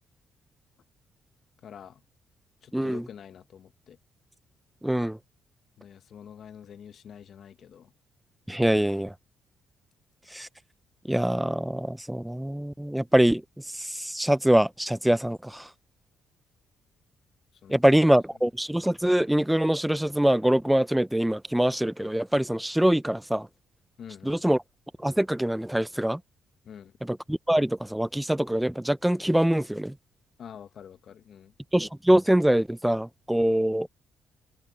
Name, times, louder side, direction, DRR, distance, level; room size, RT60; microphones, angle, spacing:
voice 1, 1.6-2.0 2.6-4.0 5.8-7.9 17.5-17.8 24.0-24.4 26.6-27.0 30.4-31.5, left 8 dB, 60° left, 1.4 m, -46 dB
voice 2, 2.7-3.1 4.8-5.2 8.5-9.1 10.3-10.5 11.0-15.7 17.7-23.5 24.2-24.6 25.0-26.2 27.0-30.0 31.7-33.9, right 1 dB, 5° right, 0.6 m, -24 dB
cardioid pair, 90°, 0 cm